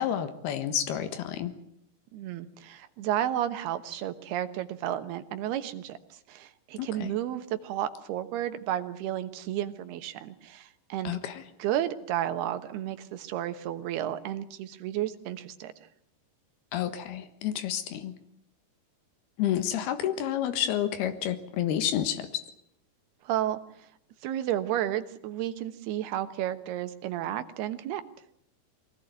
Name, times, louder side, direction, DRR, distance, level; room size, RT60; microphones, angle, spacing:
voice 1, 0.0-1.5 6.8-7.1 11.1-11.4 16.7-18.1 19.4-22.4, left 10 dB, 90° left, 10 dB, 3.5 m, -30 dB
voice 2, 2.1-11.2 11.6-15.7 23.2-23.6 24.2-28.0, right 12 dB, 85° right, 11 dB, 3.3 m, -32 dB
23.5 x 18.5 x 9.4 m, 0.69 s
omnidirectional pair, 4.5 m